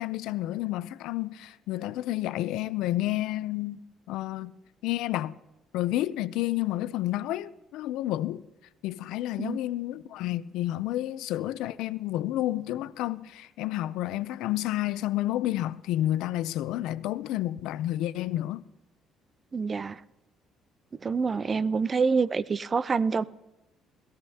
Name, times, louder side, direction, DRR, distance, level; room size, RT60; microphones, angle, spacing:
voice 1, 0.0-3.8 4.1-4.5 4.8-5.4 5.7-8.4 8.8-18.6, left 14 dB, 85° left, 0.4 m, -30 dB
voice 2, 19.5-20.0 21.0-23.2, right 5 dB, 20° right, 0.4 m, -26 dB
21.5 x 15.0 x 2.8 m
cardioid pair, 170°, 0 cm